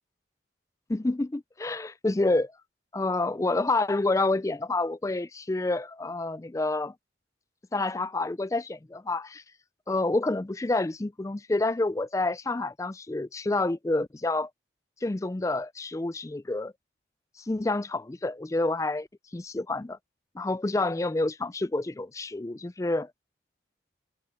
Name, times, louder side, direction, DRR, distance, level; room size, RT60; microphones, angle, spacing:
voice 1, 0.9-2.5 2.9-6.9 7.7-9.4 9.9-14.5 15.0-16.7 17.4-19.1 19.3-20.0 20.3-23.1, left 2 dB, 15° left, 0.3 m, -28 dB
head